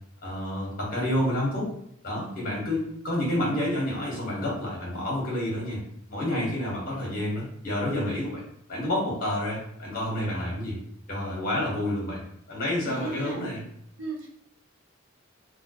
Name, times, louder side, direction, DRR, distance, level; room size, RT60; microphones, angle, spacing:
voice 1, 0.2-1.7 2.0-5.8 6.1-8.4 8.7-10.8 11.1-12.2 12.5-13.6, left 1 dB, 45° left, -4 dB, 1.5 m, -29 dB
voice 2, 12.9-13.6 14.0-14.3, right 3 dB, 70° right, 0 dB, 0.8 m, -35 dB
3.6 x 2.4 x 3.0 m, 0.71 s
head